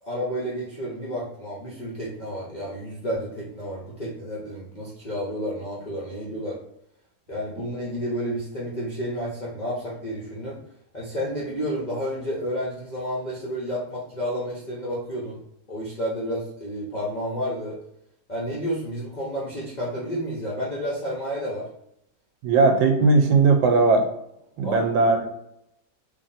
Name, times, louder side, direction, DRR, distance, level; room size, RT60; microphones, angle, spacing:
voice 1, 0.0-6.6 7.3-10.6 10.9-15.4 15.7-17.8 18.3-21.7 24.6-24.9, equal, 85° left, -6 dB, 0.4 m, -31 dB
voice 2, 22.4-24.1 24.6-25.3, right 3 dB, 80° right, 5 dB, 1.3 m, -18 dB
3.2 x 2.5 x 3.9 m, 0.76 s
omnidirectional pair, 2.1 m